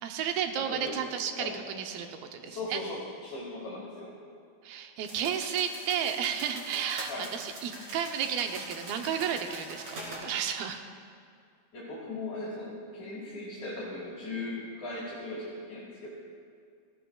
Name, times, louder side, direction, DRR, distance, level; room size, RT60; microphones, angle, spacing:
voice 1, 0.0-2.8 4.6-10.8, right 8 dB, 80° right, 5 dB, 2.6 m, -32 dB
voice 2, 0.6-1.0 1.3-1.6 2.0-2.1 2.4-4.1 7.1-7.3 11.7-16.1, left 2 dB, 55° left, -6 dB, 2.9 m, -38 dB
sound 1, 5.1-10.2, right 1 dB, 50° right, 3.5 m, -43 dB
18.0 x 15.0 x 2.3 m, 2.2 s
omnidirectional pair, 4.3 m